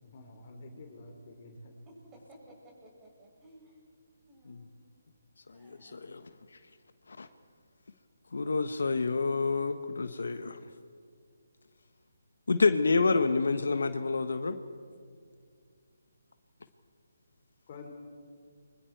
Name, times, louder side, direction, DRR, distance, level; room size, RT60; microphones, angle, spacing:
voice 1, 0.0-1.7 17.7-17.9, left 2 dB, 40° left, 3 dB, 3.3 m, -48 dB
voice 2, 1.9-3.7 4.3-4.7 5.5-6.0, right 1 dB, 15° right, -3 dB, 7.6 m, -56 dB
voice 3, 5.6-6.2 7.2-7.3 8.3-10.6 12.5-14.6, left 4 dB, 70° left, 10 dB, 1.2 m, -28 dB
29.5 x 24.5 x 4.7 m, 2.1 s
figure-of-eight pair, 150°, 0 cm